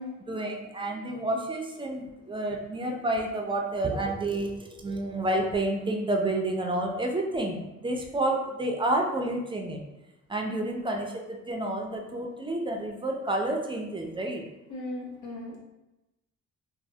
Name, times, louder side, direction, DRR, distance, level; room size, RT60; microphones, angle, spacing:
voice 1, 0.3-9.8 10.3-14.4, right 1 dB, 15° right, 1 dB, 0.3 m, -30 dB
voice 2, 10.5-10.8 14.7-15.6, left 1 dB, 85° left, -4 dB, 0.9 m, -37 dB
3.1 x 2.0 x 2.7 m, 0.95 s
cardioid pair, 115°, 30 cm